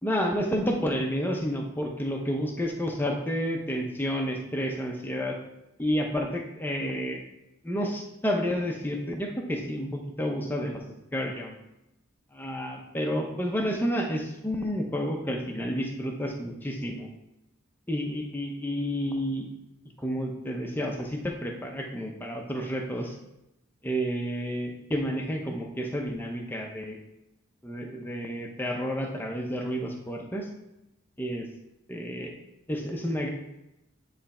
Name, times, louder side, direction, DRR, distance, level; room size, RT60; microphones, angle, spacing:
voice 1, 0.0-5.4 5.8-7.2 7.6-10.8 11.1-11.5 12.3-17.1 17.9-19.5 20.0-23.2 23.8-27.0 27.6-30.5 31.2-31.5 31.9-32.3 32.7-33.3, equal, 10° left, 1 dB, 0.7 m, -30 dB
9.3 x 3.3 x 4.2 m, 0.90 s
head